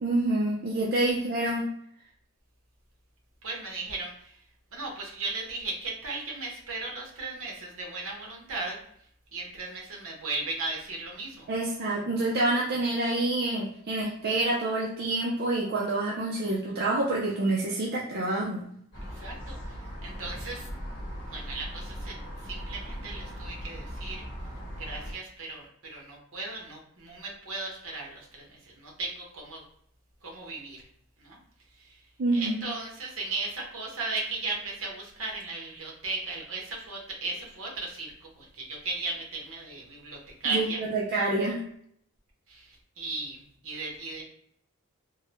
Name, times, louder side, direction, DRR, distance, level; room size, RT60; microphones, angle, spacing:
voice 1, 0.0-1.6 11.5-18.6 32.2-32.6 40.5-41.6, right 2 dB, 45° right, -4 dB, 0.5 m, -27 dB
voice 2, 3.4-4.4 4.7-8.8 9.3-11.4 19.0-19.6 20.0-20.7 21.3-24.2 24.8-29.6 30.2-30.9 31.2-31.4 31.8-32.0 32.3-40.8 42.5-44.2, right 3 dB, 65° right, -1 dB, 1.0 m, -36 dB
sound 1, 18.9-25.1, equal, 50° left, 1.1 m, -39 dB
3.5 x 2.2 x 2.9 m, 0.69 s
head